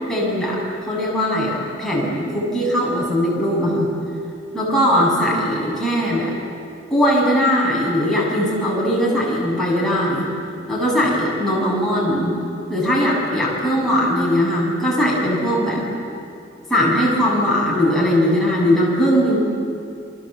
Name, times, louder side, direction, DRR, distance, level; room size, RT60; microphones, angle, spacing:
voice 1, 0.1-3.9 4.5-6.4 6.9-10.3 10.7-12.3 12.7-15.9 16.7-19.4, equal, ahead, -5 dB, 7.5 m, -19 dB
29.0 x 22.5 x 8.2 m, 2.4 s
head